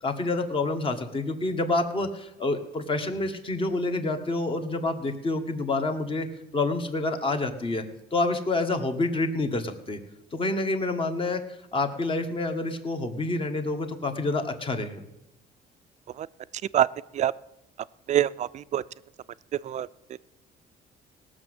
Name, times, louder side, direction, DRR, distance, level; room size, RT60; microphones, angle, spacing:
voice 1, 0.0-6.3 6.5-7.8 8.1-10.0 10.3-11.4 11.7-15.0, left 2 dB, 30° left, 7 dB, 1.7 m, -28 dB
voice 2, 18.1-18.8 19.5-20.2, right 11 dB, 45° right, 16 dB, 0.4 m, -25 dB
18.0 x 6.4 x 8.0 m, 0.87 s
cardioid pair, 110°, 17 cm